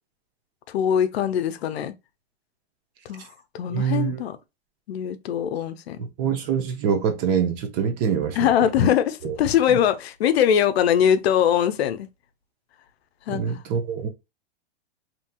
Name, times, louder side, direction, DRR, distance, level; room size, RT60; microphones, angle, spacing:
voice 1, 0.7-1.9 3.1-3.3 3.5-4.4 4.9-6.0 8.4-12.1 13.3-13.5, left 9 dB, 75° left, 0.5 m, -22 dB
voice 2, 3.7-4.2 6.0-8.9 9.2-9.4 9.7-9.8 13.3-14.1, right 7 dB, 40° right, 0.7 m, -25 dB
2.8 x 2.8 x 2.2 m
hypercardioid pair, 130°, 31 cm